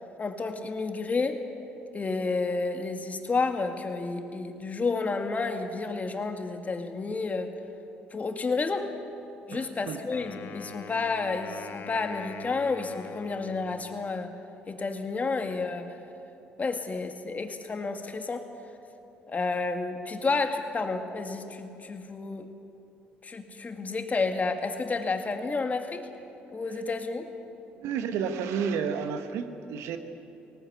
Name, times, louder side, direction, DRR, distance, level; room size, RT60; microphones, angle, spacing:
voice 1, 0.2-1.5 1.9-7.5 8.1-8.9 9.5-14.3 14.7-15.9 16.6-18.4 19.3-22.5 23.2-26.1 26.5-27.3, left 3 dB, 35° left, 6 dB, 2.1 m, -30 dB
voice 2, 9.5-10.0 27.7-30.0, right 6 dB, 75° right, 8 dB, 1.4 m, -31 dB
Wind instrument woodwind instrument, 10.1-14.4, left 6 dB, 50° left, 1.5 m, -45 dB
18.5 x 18.5 x 8.2 m, 2.8 s
hypercardioid pair, 60°, 5 cm